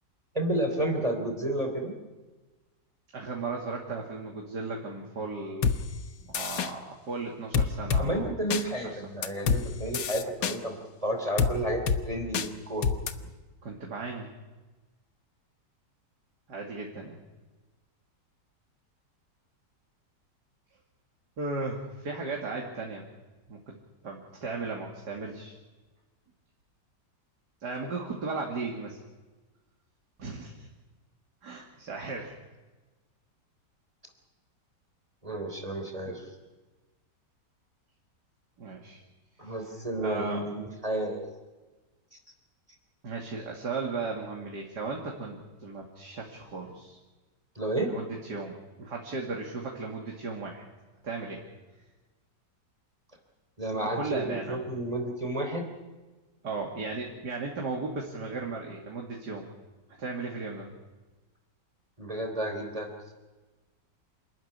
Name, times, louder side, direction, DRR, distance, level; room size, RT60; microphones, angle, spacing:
voice 1, 0.3-1.9 8.0-10.7 11.0-12.9 35.2-36.2 39.4-41.3 42.1-42.2 47.5-47.9 53.6-55.6 62.0-63.1, right 1 dB, 20° right, 3 dB, 3.4 m, -31 dB
voice 2, 3.1-5.7 6.2-9.0 13.2-13.3 13.6-14.3 16.5-17.2 21.4-23.0 23.5-23.8 24.0-25.5 27.6-29.0 30.2-30.7 31.4-32.3 36.0-36.1 38.6-39.0 39.4-39.6 40.0-40.5 43.0-47.0 47.8-50.6 51.0-51.4 53.8-54.6 56.4-59.5 60.0-60.7, right 3 dB, 70° right, 0 dB, 3.1 m, -36 dB
sound 1, 5.6-5.8 6.3-6.7 7.5-8.0 8.5-8.6 9.2-9.6 9.9-10.6 11.4-11.5 11.9-12.0 12.3-12.5 12.8-13.1, left 6 dB, 80° left, 1.8 m, -26 dB
27.5 x 13.5 x 10.0 m, 1.2 s
omnidirectional pair, 1.9 m